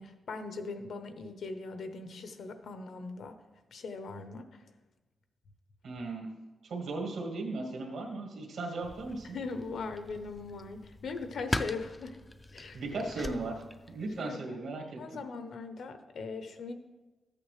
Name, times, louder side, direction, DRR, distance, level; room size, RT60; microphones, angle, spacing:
voice 1, 0.0-3.4 3.7-4.6 9.3-12.2 12.5-13.3 14.2-14.6 15.0-16.7, left 4 dB, 65° left, 8 dB, 0.8 m, -40 dB
voice 2, 5.8-6.3 6.6-9.4 12.7-15.2, right 3 dB, 75° right, 1 dB, 1.7 m, -37 dB
sound 1, 8.8-14.2, left 1 dB, 15° left, 0.3 m, -41 dB
13.5 x 8.5 x 3.3 m, 1.2 s
wide cardioid pair, 175°, 0 cm